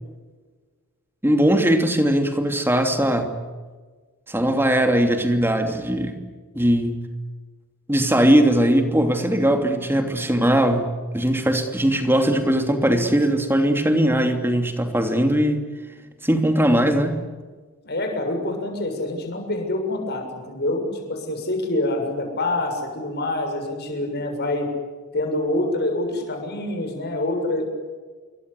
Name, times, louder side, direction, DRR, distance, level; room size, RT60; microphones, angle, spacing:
voice 1, 1.2-3.4 4.3-6.1 6.5-7.0 7.9-15.6 16.2-17.2, right 1 dB, 10° right, 5 dB, 2.9 m, -20 dB
voice 2, 17.8-24.7 25.1-27.6, left 1 dB, 50° left, 4 dB, 7.1 m, -26 dB
27.5 x 23.5 x 8.5 m, 1.4 s
head